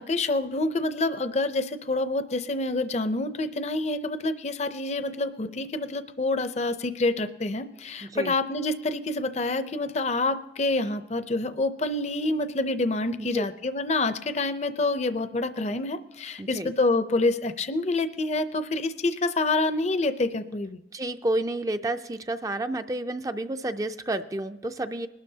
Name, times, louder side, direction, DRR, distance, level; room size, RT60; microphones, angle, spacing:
voice 1, 0.0-20.8, left 2 dB, 40° left, 11 dB, 0.5 m, -27 dB
voice 2, 8.0-8.3 13.3-13.4 16.4-16.7 20.9-25.1, right 2 dB, 20° right, 8 dB, 0.4 m, -30 dB
21.0 x 12.0 x 2.8 m, 0.97 s
head